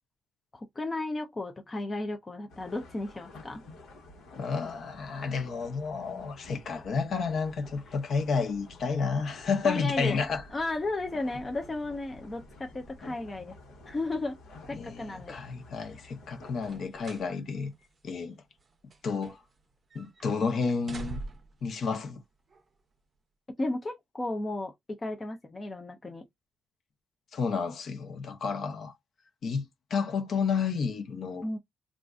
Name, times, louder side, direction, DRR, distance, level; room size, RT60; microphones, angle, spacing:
voice 1, 0.5-3.6 9.6-10.2 10.5-13.6 13.9-14.4 14.7-15.4 23.6-26.2 31.4-31.6, left 2 dB, 20° left, 0.5 m, -34 dB
sound 1, 2.5-16.8, left 2 dB, 75° left, 1.2 m, -51 dB
voice 2, 4.4-10.4 14.7-17.7 18.0-18.4 19.0-19.4 19.9-21.2 21.6-22.2 27.3-28.9 29.4-31.5, left 5 dB, 50° left, 0.8 m, -31 dB
sound 2, 16.6-17.3 17.7-17.9 18.6-19.6 19.9-20.3 20.7-21.6 22.5-22.6, right 3 dB, 30° right, 0.7 m, -43 dB
3.7 x 2.4 x 2.3 m
cardioid pair, 135°, 0 cm